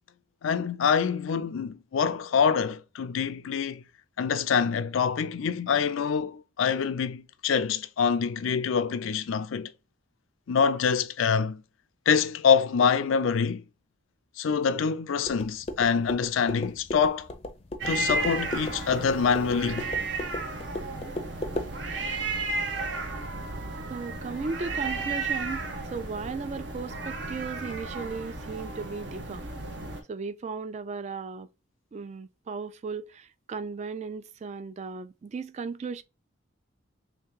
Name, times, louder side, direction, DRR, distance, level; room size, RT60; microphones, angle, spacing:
voice 1, 0.4-3.8 4.2-9.7 10.5-11.6 12.1-13.6 14.4-17.3 17.9-19.9, left 6 dB, 90° left, 0.4 m, -25 dB
sound 1, 15.2-21.7, left 1 dB, 30° left, 0.5 m, -37 dB
sound 2, 17.8-30.0, right 3 dB, 60° right, 0.7 m, -33 dB
voice 2, 23.9-25.6 25.9-29.5 30.1-31.5 31.9-36.0, right 4 dB, 35° right, 0.3 m, -36 dB
3.1 x 2.8 x 3.5 m
head